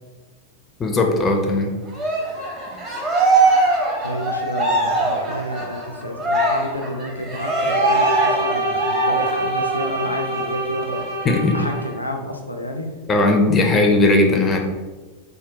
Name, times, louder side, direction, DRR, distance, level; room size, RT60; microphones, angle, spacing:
voice 1, 0.8-1.7 11.2-11.6 13.1-14.6, left 2 dB, 20° left, 3 dB, 0.4 m, -17 dB
Cheering, 1.9-9.9 10.3-10.5 10.8-11.8, right 2 dB, 25° right, 0.8 m, -21 dB
voice 2, 4.0-11.0 11.5-12.9, equal, 85° left, 3 dB, 0.4 m, -30 dB
Bowed string instrument, 7.3-12.0, right 1 dB, 80° right, 0.6 m, -27 dB
3.6 x 2.1 x 2.7 m, 1.3 s
figure-of-eight pair, 90°, 0 cm